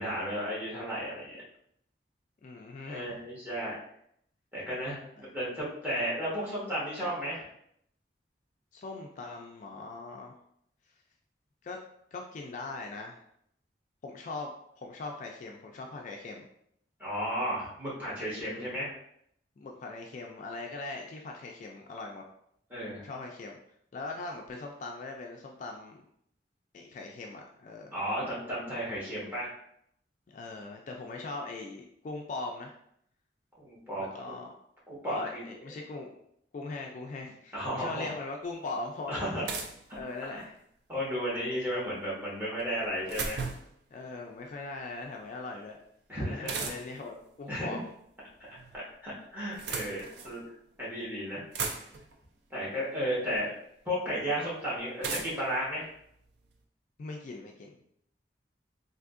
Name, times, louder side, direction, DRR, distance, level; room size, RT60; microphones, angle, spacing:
voice 1, 0.0-1.4 2.9-3.8 4.5-7.5 17.0-18.9 22.7-23.1 27.9-29.5 33.6-34.4 34.9-35.4 37.5-38.1 39.1-39.5 40.3-40.4 40.9-43.4 46.1-46.7 47.5-47.8 48.4-50.4 50.8-51.4 52.5-53.5 53.8-55.9, equal, 10° right, -8 dB, 1.2 m, -34 dB
voice 2, 2.4-3.2 8.7-10.3 11.6-11.8 12.1-13.2 14.0-14.5 14.8-16.5 18.5-18.8 19.6-22.2 22.9-23.6 23.9-26.0 26.7-28.0 30.3-32.7 34.0-34.5 35.1-36.1 36.5-39.5 39.9-40.5 43.9-45.8 46.1-47.9 53.2-53.4 57.0-57.7, left 3 dB, 45° left, 1 dB, 0.3 m, -40 dB
sound 1, 38.4-38.5 39.5-40.6 42.6-43.8 46.5-47.1 48.2-48.8 49.4-50.4 51.0-51.1 51.3-52.2 53.3-53.4 55.0-56.6, right 4 dB, 65° right, 0.4 m, -37 dB
3.5 x 2.6 x 2.5 m, 0.71 s
head